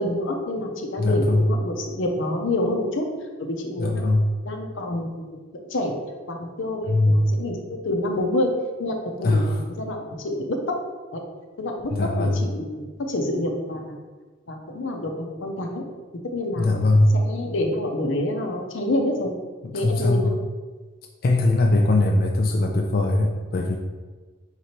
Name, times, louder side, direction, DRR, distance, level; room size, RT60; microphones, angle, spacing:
voice 1, 0.0-3.1 3.4-4.1 4.5-5.4 5.7-5.9 6.3-8.5 8.8-10.8 11.1-11.2 11.6-14.0 14.5-15.8 16.2-19.3 19.7-20.4, left 1 dB, 90° left, 2 dB, 0.7 m, -27 dB
voice 2, 1.0-1.5 3.8-4.3 6.9-7.3 9.2-9.6 11.9-12.4 16.5-17.2 19.6-20.4 21.2-23.8, left 2 dB, 50° left, 2 dB, 0.4 m, -20 dB
4.3 x 3.8 x 3.0 m, 1.4 s
head